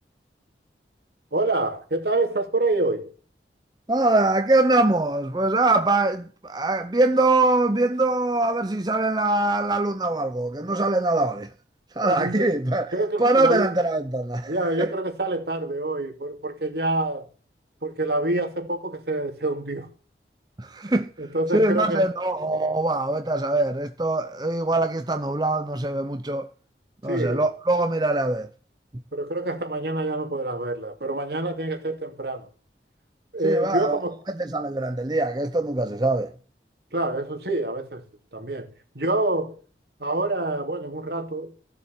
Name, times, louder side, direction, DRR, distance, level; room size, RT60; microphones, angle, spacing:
voice 1, 1.3-3.1 12.0-12.5 12.9-13.8 14.5-17.3 17.8-19.9 21.2-22.1 27.1-27.5 29.1-32.5 33.3-34.1 36.9-38.1 38.3-39.6 40.0-41.5, right 2 dB, 65° right, 2.7 m, -27 dB
voice 2, 3.9-11.5 12.0-12.9 13.2-14.9 20.6-21.1 21.5-26.5 27.0-28.5 33.4-34.0 34.4-36.3, right 2 dB, 25° right, 0.7 m, -23 dB
16.0 x 7.4 x 8.5 m
head